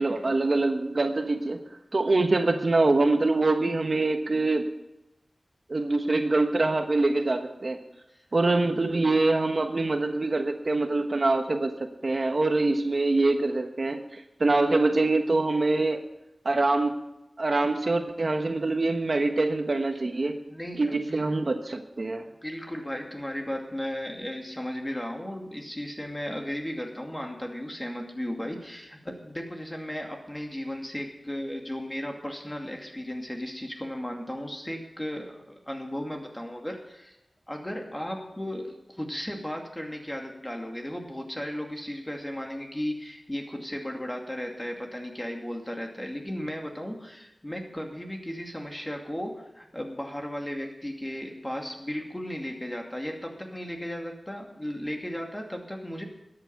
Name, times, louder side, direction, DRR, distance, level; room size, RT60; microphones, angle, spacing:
voice 1, 0.0-1.6 1.9-4.6 5.7-7.8 8.3-11.7 12.0-16.0 16.4-16.9 17.4-20.3 20.8-22.3, right 2 dB, 60° right, 6 dB, 1.1 m, -24 dB
voice 2, 20.2-21.2 22.4-37.2 37.5-56.0, equal, 15° left, 2 dB, 2.5 m, -35 dB
13.0 x 8.8 x 7.0 m, 0.89 s
wide cardioid pair, 60°, 0 cm